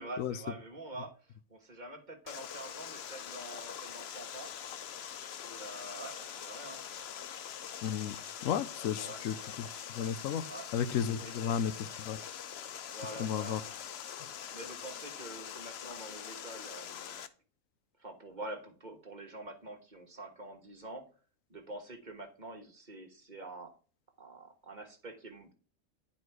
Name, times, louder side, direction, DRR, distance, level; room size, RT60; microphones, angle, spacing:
voice 1, 0.0-4.8 5.3-6.8 8.5-9.2 10.4-10.7 11.2-11.3 12.9-13.7 14.5-17.2 18.0-21.0 21.5-23.7 24.2-25.5, right 2 dB, 35° right, 1.4 m, -46 dB
Water, 2.3-17.3, left 9 dB, 60° left, 0.8 m, -44 dB
voice 2, 7.8-8.2 8.4-9.7 9.9-10.4 10.7-12.2 13.2-13.6, left 8 dB, 85° left, 1.0 m, -33 dB
10.0 x 4.4 x 4.6 m
omnidirectional pair, 1.4 m